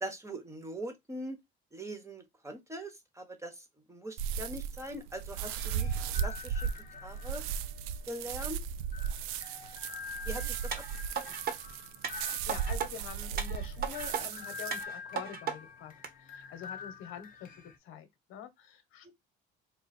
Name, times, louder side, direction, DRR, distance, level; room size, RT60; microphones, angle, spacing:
voice 1, 0.0-1.4 1.7-6.7 7.0-7.4 8.1-8.6 10.2-10.8 19.0-19.1, right 1 dB, 15° right, 1.1 m, -42 dB
sound 1, 4.2-14.8, right 8 dB, 85° right, 0.4 m, -36 dB
sound 2, 5.4-17.8, left 6 dB, 40° left, 0.8 m, -47 dB
sound 3, 10.7-11.6 12.0-12.9 13.4-14.2 14.7-15.6 16.0-16.1, right 7 dB, 45° right, 1.0 m, -36 dB
voice 2, 12.4-19.1, left 9 dB, 75° left, 1.0 m, -46 dB
3.8 x 2.2 x 4.1 m
cardioid pair, 105°, 21 cm